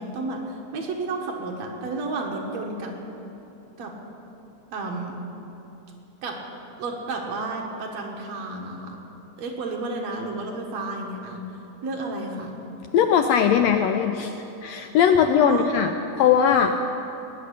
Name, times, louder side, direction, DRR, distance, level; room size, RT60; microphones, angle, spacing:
voice 1, 0.0-2.9 3.8-3.9 4.7-5.2 6.2-6.4 6.8-9.0 9.4-11.4 11.8-12.5 15.4-16.0 16.7-17.1, right 3 dB, 65° right, 0 dB, 2.6 m, -32 dB
voice 2, 12.9-14.3 14.6-15.9 16.2-16.7, left 8 dB, 80° left, 7 dB, 1.6 m, -19 dB
19.0 x 6.8 x 9.8 m, 2.9 s
omnidirectional pair, 3.5 m